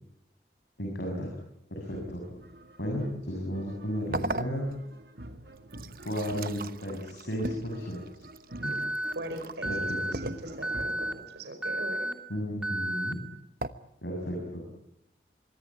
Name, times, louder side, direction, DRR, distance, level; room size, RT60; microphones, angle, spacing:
voice 1, 0.8-1.3 1.7-2.2 2.8-4.7 6.0-8.0 8.6-8.7 9.6-10.0 12.3-13.2 14.0-14.6, equal, 80° left, 1 dB, 7.0 m, -33 dB
sound 1, 1.8-11.2, right 1 dB, 70° right, 2.2 m, -46 dB
sound 2, 4.1-5.0 5.6-9.6 10.1-10.9 13.6-13.7, right 2 dB, 55° right, 1.1 m, -38 dB
Alarm, 8.6-9.1 9.6-10.1 10.6-11.1 11.6-12.1 12.6-13.1, right 1 dB, 5° right, 2.5 m, -31 dB
voice 2, 9.1-12.1, right 1 dB, 90° right, 7 dB, 5.0 m, -40 dB
25.5 x 23.0 x 8.7 m, 0.82 s
head